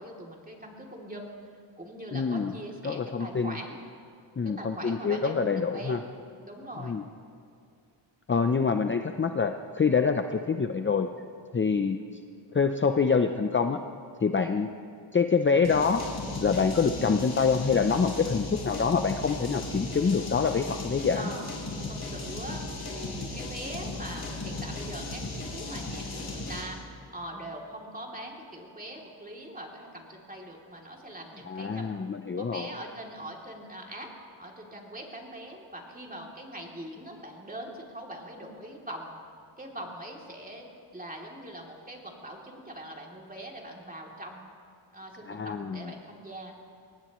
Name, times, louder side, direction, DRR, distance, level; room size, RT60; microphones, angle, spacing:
voice 1, 0.0-1.4 1.8-3.8 4.4-6.0 6.4-7.0 14.4-14.7 21.1-21.5 21.9-32.0 32.4-34.1 34.4-39.2 39.6-40.7 40.9-44.4 44.9-46.5, right 1 dB, 20° right, -1 dB, 3.0 m, -42 dB
voice 2, 2.1-2.5 2.8-3.5 4.4-6.0 6.8-7.0 8.3-11.1 11.5-12.0 12.5-13.8 14.2-14.7 15.1-16.0 16.4-21.3 31.5-32.7 45.3-45.9, left 5 dB, 25° left, 6 dB, 0.6 m, -26 dB
sound 1, 15.6-26.8, left 2 dB, 50° left, 3.8 m, -36 dB
24.0 x 18.5 x 3.1 m, 2.4 s
cardioid pair, 85°, 46 cm